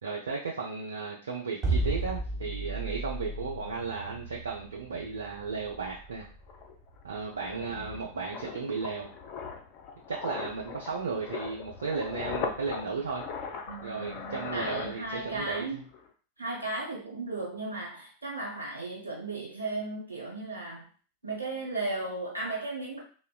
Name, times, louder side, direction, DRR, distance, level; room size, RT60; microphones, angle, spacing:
voice 1, 0.0-6.3 7.0-9.1 10.1-13.2 13.8-15.8, right 5 dB, 70° right, -2 dB, 0.4 m, -35 dB
sound 1, 1.6-7.8, right 2 dB, 25° right, 1.0 m, -34 dB
sound 2, 6.1-6.2 6.5-15.5 15.8-16.1, left 5 dB, 40° left, 0.5 m, -39 dB
voice 2, 7.7-8.0 13.7-15.8 16.4-20.9 21.2-23.0, right 2 dB, 85° right, -4 dB, 1.0 m, -36 dB
3.6 x 2.0 x 2.3 m, 0.41 s
figure-of-eight pair, 90°, 0 cm